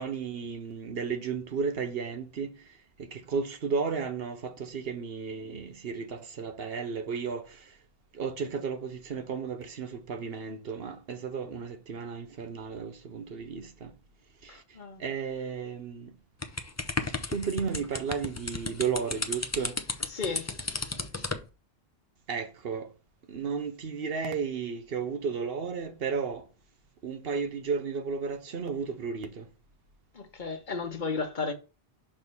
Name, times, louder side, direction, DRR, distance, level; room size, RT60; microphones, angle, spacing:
voice 1, 0.0-2.5 3.1-7.5 8.2-13.9 15.0-16.1 17.3-19.7 22.3-22.9 23.3-26.4 27.0-29.4, right 5 dB, 70° right, 1.0 m, -33 dB
voice 2, 14.5-15.0 20.1-20.5 30.1-31.5, left 4 dB, 50° left, 1.2 m, -34 dB
sound 1, 16.4-21.5, left 3 dB, 20° left, 0.4 m, -34 dB
6.2 x 3.4 x 5.3 m
omnidirectional pair, 1.1 m